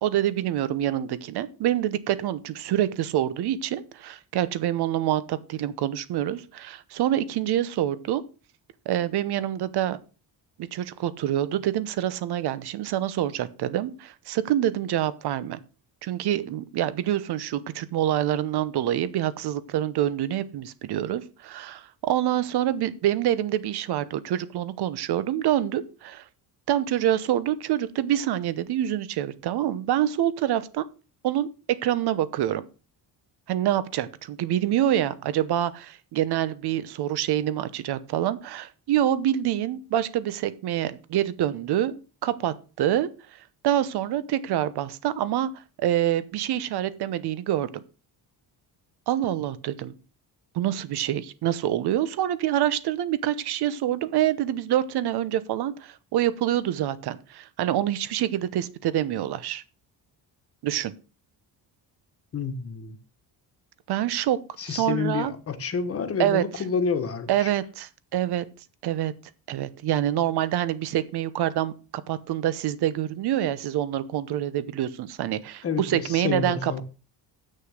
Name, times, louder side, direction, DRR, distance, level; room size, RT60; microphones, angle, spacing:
voice 1, 0.0-8.2 8.9-10.0 10.6-15.6 16.0-26.2 26.7-30.8 31.2-32.6 33.5-47.8 49.1-49.9 50.5-59.6 60.6-60.9 63.9-64.4 64.7-65.3 66.2-66.4 67.3-68.4 68.8-69.1 69.5-76.8, right 12 dB, 65° right, 0.9 m, -26 dB
voice 2, 62.3-63.0 64.6-67.5 75.6-76.8, left 6 dB, 35° left, 1.3 m, -29 dB
7.9 x 6.5 x 6.4 m
cardioid pair, 170°, 42 cm